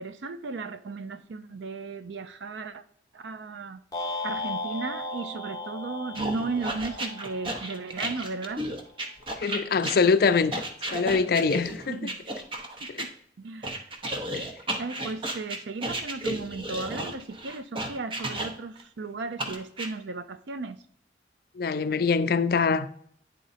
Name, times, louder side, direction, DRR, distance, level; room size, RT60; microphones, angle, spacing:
voice 1, 0.0-2.8 3.1-3.8 4.2-8.6 11.9-12.2 13.0-13.1 13.4-13.8 14.8-20.8, right 3 dB, 80° right, 0.5 m, -35 dB
sound 1, 3.9-8.2, left 2 dB, 20° left, 0.7 m, -36 dB
sound 2, 6.2-13.1 13.6-18.8 19.4-19.9, right 1 dB, 30° right, 0.8 m, -33 dB
voice 2, 9.4-10.6 10.9-12.0 12.9-13.1 14.3-14.5 21.6-22.9, left 5 dB, 55° left, 0.4 m, -24 dB
9.2 x 3.8 x 4.1 m
head